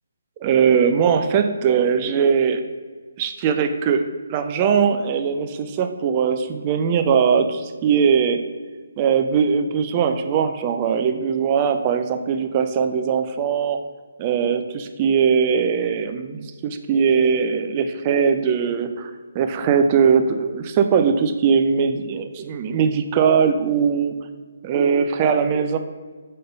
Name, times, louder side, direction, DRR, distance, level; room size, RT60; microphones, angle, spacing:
voice 1, 0.4-2.6 3.2-8.4 9.0-13.8 14.2-24.2 24.6-25.8, right 6 dB, 25° right, 8 dB, 0.4 m, -20 dB
5.4 x 3.8 x 5.1 m, 1.5 s
figure-of-eight pair, 140°, 0 cm